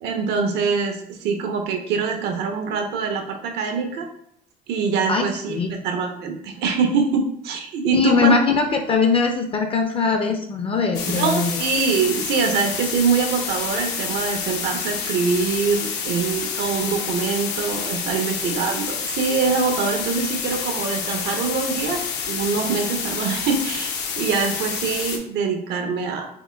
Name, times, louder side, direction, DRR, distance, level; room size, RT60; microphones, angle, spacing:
voice 1, 0.0-4.1 4.7-8.4 11.1-26.3, right 5 dB, 85° right, 4 dB, 0.8 m, -24 dB
voice 2, 5.1-5.8 7.9-11.5, left 4 dB, 35° left, 4 dB, 0.4 m, -21 dB
sound 1, 10.9-25.2, left 6 dB, 85° left, 0.7 m, -28 dB
6.7 x 2.5 x 2.2 m, 0.72 s
cardioid pair, 110°, 17 cm